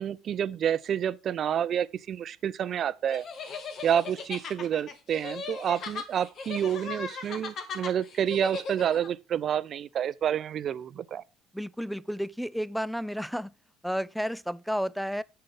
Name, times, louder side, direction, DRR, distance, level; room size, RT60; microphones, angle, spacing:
voice 1, 0.0-3.2 3.8-11.2, right 9 dB, 50° right, 0.6 m, -29 dB
sound 1, 3.1-9.1, left 5 dB, 50° left, 1.7 m, -38 dB
voice 2, 11.5-13.5 13.8-15.2, equal, ahead, 0.5 m, -31 dB
8.6 x 6.8 x 5.5 m
hypercardioid pair, 60°, 0 cm